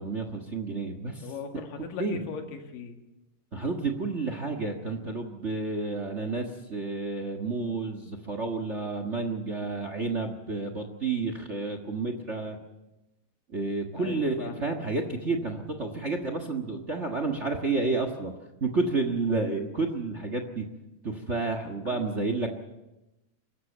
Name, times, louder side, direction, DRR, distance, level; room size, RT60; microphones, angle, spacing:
voice 1, 0.0-1.3 1.7-2.2 3.5-12.6 13.5-18.3 18.6-20.7 21.0-22.5, right 3 dB, 45° right, 7 dB, 0.9 m, -30 dB
voice 2, 1.2-3.0 14.0-14.7 21.9-22.0, left 6 dB, 90° left, 5 dB, 3.7 m, -39 dB
24.5 x 14.0 x 9.1 m, 0.98 s
omnidirectional pair, 3.8 m